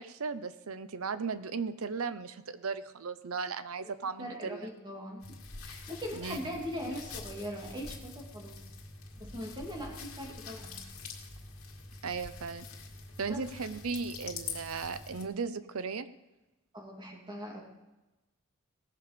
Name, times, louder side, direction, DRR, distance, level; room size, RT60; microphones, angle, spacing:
voice 1, 0.0-4.7 6.1-6.4 12.0-12.7 13.2-16.1, right 5 dB, 80° right, 13 dB, 0.7 m, -36 dB
voice 2, 4.2-5.4 5.6-8.7 9.2-10.9 13.3-13.5 16.7-17.6, equal, 20° right, 0 dB, 2.5 m, -41 dB
sound 1, 5.2-15.2, left 4 dB, 80° left, 2.0 m, -45 dB
18.0 x 6.9 x 5.1 m, 1.0 s
head